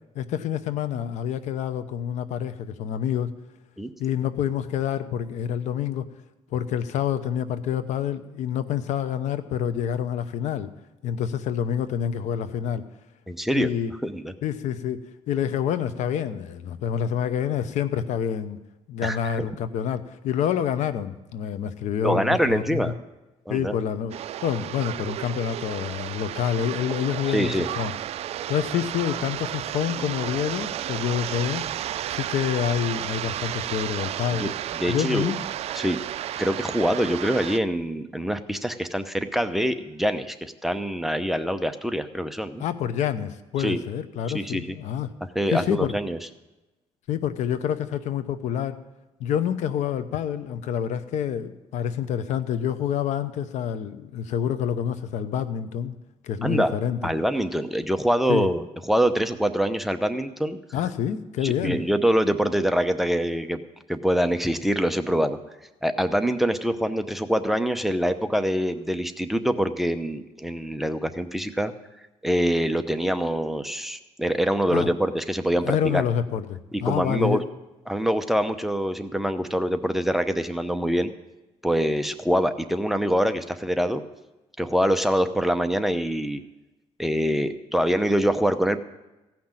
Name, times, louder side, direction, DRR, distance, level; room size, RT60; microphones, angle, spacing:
voice 1, 0.1-3.3 4.0-6.1 6.5-10.7 11.0-12.8 13.5-13.9 14.4-18.6 18.9-22.8 23.5-24.1 24.4-27.9 28.5-31.7 32.1-34.5 34.9-35.4 42.6-45.1 45.5-45.9 47.1-48.8 49.2-55.9 56.2-57.0 58.3-58.5 60.7-61.8 74.7-74.9 75.6-77.4, left 9 dB, 75° left, 12 dB, 0.9 m, -27 dB
voice 2, 13.3-13.7 14.0-14.3 19.0-19.4 22.0-22.9 23.5-23.7 27.3-27.7 34.3-35.3 35.7-36.0 36.4-42.6 43.6-43.8 44.3-44.8 45.3-46.2 56.4-56.7 57.0-60.6 61.4-63.6 63.9-65.4 65.8-71.7 72.2-76.0 76.7-77.4 77.9-81.1 81.6-84.0 84.6-86.4 87.0-88.8, equal, ahead, 9 dB, 0.7 m, -24 dB
sound 1, 24.1-37.6, right 12 dB, 60° right, 0.4 m, -32 dB
16.0 x 6.0 x 8.8 m, 1.0 s
cardioid pair, 120°, 12 cm